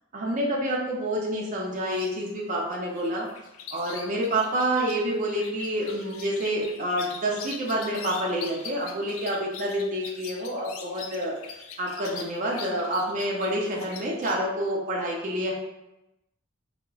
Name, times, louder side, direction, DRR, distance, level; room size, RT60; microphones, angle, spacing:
voice 1, 0.1-3.3 3.7-11.3 11.8-15.5, right 1 dB, 40° right, -3 dB, 0.5 m, -28 dB
sound 1, 1.8-2.1 2.7-14.4, left 6 dB, 80° left, 0.3 m, -43 dB
3.8 x 2.1 x 2.3 m, 0.92 s
head